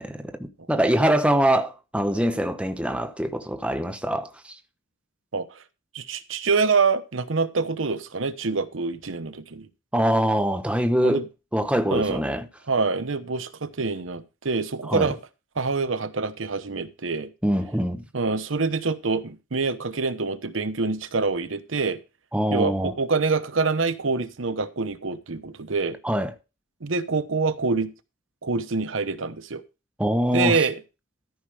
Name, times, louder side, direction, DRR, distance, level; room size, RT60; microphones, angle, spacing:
voice 1, 0.0-4.3 9.9-11.2 11.5-12.4 14.9-15.1 17.4-18.0 22.3-22.9 26.0-26.3 30.0-30.6, right 1 dB, 5° right, 0.9 m, -23 dB
voice 2, 5.9-9.7 11.0-11.2 11.9-12.2 12.7-15.2 15.6-17.3 18.1-22.0 22.5-26.0 26.8-27.9 28.4-29.6 30.3-30.8, right 4 dB, 80° right, 0.9 m, -26 dB
13.5 x 5.6 x 4.9 m
head